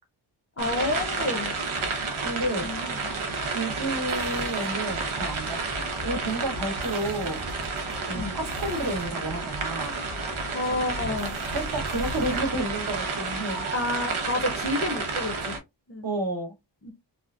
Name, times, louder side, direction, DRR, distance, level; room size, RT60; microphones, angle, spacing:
voice 1, 0.6-1.6 2.6-3.1 8.1-8.4 10.5-11.4 13.7-15.6 15.9-16.1 16.8-16.9, left 2 dB, 30° left, 0.6 m, -30 dB
sound 1, 0.6-15.6, right 3 dB, 90° right, 0.9 m, -31 dB
voice 2, 2.2-2.7 3.5-7.4 8.0-10.1 11.5-13.7 16.0-16.5, right 1 dB, 45° right, 1.0 m, -31 dB
sound 2, 4.0-12.6, left 2 dB, 15° right, 0.5 m, -44 dB
2.8 x 2.4 x 2.3 m
wide cardioid pair, 130°, 47 cm